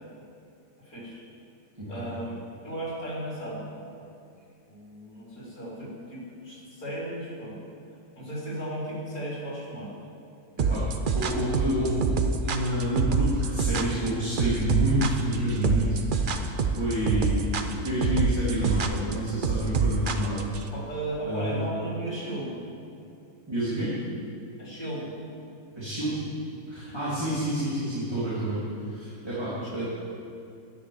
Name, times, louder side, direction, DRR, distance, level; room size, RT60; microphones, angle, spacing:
voice 1, 0.8-1.2 1.9-4.1 4.7-7.6 8.1-9.9 20.7-22.6 24.6-25.1 29.6-29.8, right 1 dB, 75° left, -6 dB, 4.3 m, -35 dB
sound 1, 10.6-20.6, right 5 dB, 45° right, 0.7 m, -26 dB
voice 2, 11.1-17.4 17.6-20.5 21.2-21.6 23.5-23.9 25.7-26.2 26.7-28.6 28.8-29.8, right 1 dB, 15° right, -10 dB, 2.8 m, -28 dB
11.0 x 10.0 x 7.1 m, 2.5 s
omnidirectional pair, 1.5 m